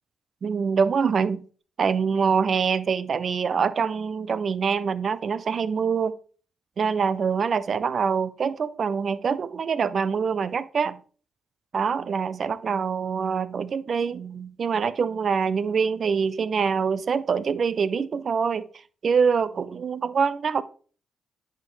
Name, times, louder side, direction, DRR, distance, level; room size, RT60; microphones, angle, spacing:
voice 1, 0.4-1.4 1.8-6.2 6.8-11.0 11.7-18.7 19.0-20.6, right 6 dB, 55° right, 0.5 m, -25 dB
10.0 x 4.4 x 3.2 m
hypercardioid pair, 45°, 0 cm